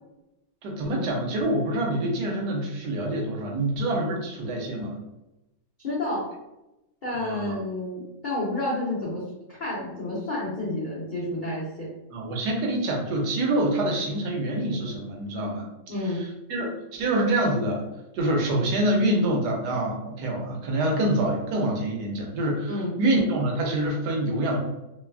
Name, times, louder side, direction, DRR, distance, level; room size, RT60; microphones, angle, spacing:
voice 1, 0.6-5.0 7.1-7.5 12.1-17.8 18.1-24.6, right 1 dB, 80° right, 0 dB, 1.2 m, -26 dB
voice 2, 5.8-6.3 7.0-9.2 9.5-11.9 15.9-16.2 22.7-22.9, left 2 dB, 65° left, -8 dB, 0.4 m, -30 dB
3.0 x 2.2 x 2.3 m, 0.94 s
omnidirectional pair, 1.8 m